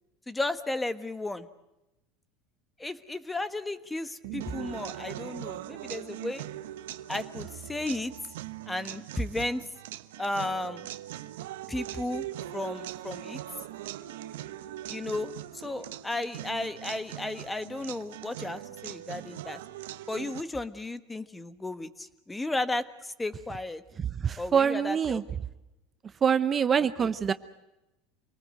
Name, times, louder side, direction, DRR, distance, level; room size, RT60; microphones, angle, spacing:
voice 1, 0.3-1.5 2.8-6.4 7.1-8.1 8.7-9.6 10.2-10.9 11.7-12.3 12.5-13.4 14.9-19.6 20.1-23.8 24.4-25.2 26.8-27.1, left 2 dB, 10° left, 12 dB, 1.4 m, -34 dB
sound 1, 4.2-5.9 7.3-8.6, right 16 dB, 75° right, 1.8 m, -45 dB
sound 2, 4.4-20.4, right 13 dB, 90° right, 1.1 m, -41 dB
voice 2, 24.0-25.2 26.2-27.3, right 7 dB, 30° right, 12 dB, 0.9 m, -25 dB
27.0 x 19.0 x 7.8 m, 0.96 s
supercardioid pair, 115°, 0 cm